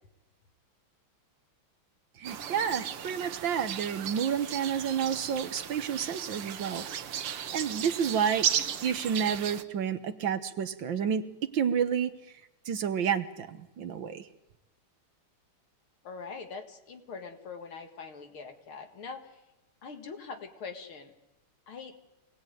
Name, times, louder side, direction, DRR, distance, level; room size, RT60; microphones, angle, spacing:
voice 1, 2.2-6.9 7.5-8.5 8.8-12.1 12.7-14.3, right 7 dB, 65° right, 10 dB, 1.7 m, -30 dB
sound 1, 2.2-9.6, right 9 dB, 85° right, 2.0 m, -35 dB
voice 2, 16.0-19.3 19.8-21.1 21.7-22.0, left 5 dB, 75° left, 5 dB, 2.7 m, -43 dB
25.0 x 18.0 x 9.2 m, 0.95 s
omnidirectional pair, 2.4 m